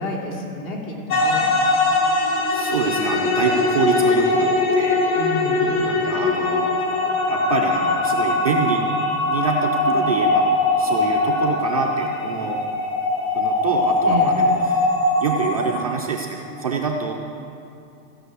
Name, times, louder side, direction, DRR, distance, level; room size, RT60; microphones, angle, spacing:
voice 1, 0.0-1.5 5.1-5.7 14.0-14.4, equal, 60° left, -2 dB, 3.1 m, -30 dB
sound 1, 1.1-15.8, left 2 dB, 30° left, 1.1 m, -21 dB
voice 2, 2.5-5.0 5.8-7.0 7.3-8.9 9.3-10.5 10.8-12.6 13.3-14.9 15.2-17.1, right 5 dB, 30° right, -2 dB, 0.3 m, -26 dB
15.5 x 6.1 x 8.0 m, 2.6 s
supercardioid pair, 165°, 45 cm